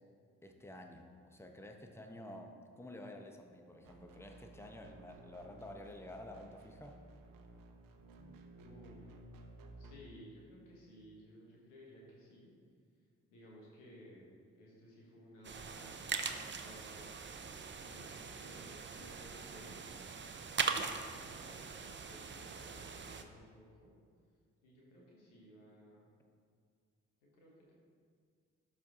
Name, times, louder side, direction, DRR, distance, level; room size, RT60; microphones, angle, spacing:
voice 1, 0.4-7.0 8.2-8.4 20.7-20.9, left 1 dB, 5° left, 4 dB, 0.9 m, -51 dB
sound 1, 3.8-10.0, right 2 dB, 65° right, 0.8 m, -56 dB
voice 2, 8.5-9.1 9.8-12.5 13.3-16.0 16.6-17.1 17.8-19.9 20.6-23.9 24.6-26.1 27.4-27.7, equal, 90° left, -3 dB, 1.4 m, -57 dB
sound 2, 15.4-23.2, right 5 dB, 30° right, 0.7 m, -41 dB
12.0 x 4.2 x 3.7 m, 2.1 s
hypercardioid pair, 40°, 36 cm